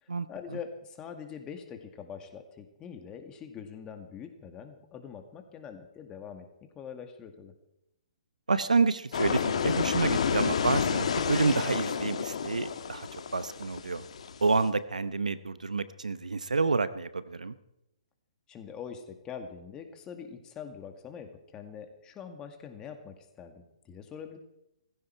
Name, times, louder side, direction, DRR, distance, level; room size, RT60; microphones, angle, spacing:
voice 1, 0.0-6.5 6.7-7.5 18.5-24.4, left 7 dB, 20° left, 6 dB, 2.0 m, -44 dB
voice 2, 8.5-14.1 14.4-17.5, right 4 dB, 85° right, 15 dB, 0.9 m, -29 dB
sound 1, 9.1-14.7, left 6 dB, 60° left, 1.6 m, -30 dB
17.5 x 15.5 x 4.7 m, 0.87 s
hypercardioid pair, 130°, 4 cm